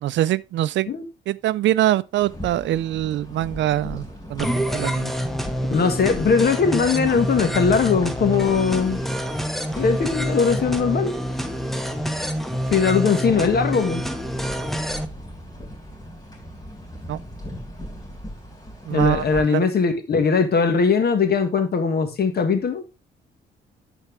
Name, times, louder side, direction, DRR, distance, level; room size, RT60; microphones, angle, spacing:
voice 1, 0.0-0.9 1.3-4.5 4.7-5.1 17.1-17.2 18.9-19.7, right 13 dB, 70° right, 0.4 m, -23 dB
sound 1, 2.2-19.4, equal, 20° left, 3.9 m, -39 dB
sound 2, 4.4-15.0, equal, ahead, 0.9 m, -27 dB
voice 2, 5.7-9.0 9.8-11.1 12.7-14.0 18.9-22.8, left 5 dB, 50° left, 1.6 m, -20 dB
11.0 x 4.5 x 3.3 m
cardioid pair, 90°, 20 cm